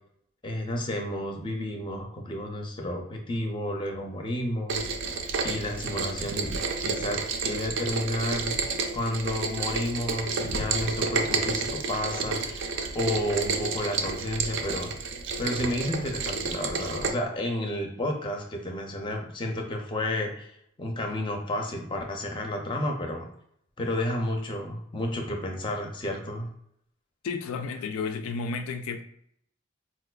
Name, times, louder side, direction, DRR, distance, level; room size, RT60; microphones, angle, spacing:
voice 1, 0.4-4.8 5.4-8.6 8.9-12.7 12.9-14.9 15.4-23.3 23.8-26.5, left 1 dB, 25° left, 2 dB, 0.4 m, -31 dB
Rain, 4.7-17.1, right 4 dB, 65° right, 0.4 m, -30 dB
voice 2, 27.2-29.0, left 4 dB, 90° left, 7 dB, 0.3 m, -32 dB
4.2 x 2.4 x 2.2 m, 0.70 s
head